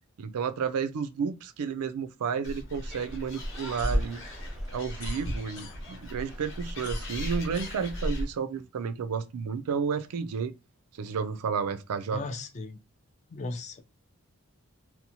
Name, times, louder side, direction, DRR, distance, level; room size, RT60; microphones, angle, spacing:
voice 1, 0.2-4.2 4.7-10.5 10.9-12.2, right 6 dB, 90° right, 0.4 m, -31 dB
Animal, 2.4-8.2, equal, 55° left, 0.8 m, -38 dB
sound 1, 2.9-8.1, equal, ahead, 0.7 m, -52 dB
sound 2, 3.8-6.1 6.4-8.3, equal, 85° left, 0.6 m, -33 dB
voice 2, 12.1-12.8 13.3-13.8, left 3 dB, 30° left, 0.3 m, -36 dB
2.7 x 2.0 x 2.8 m
head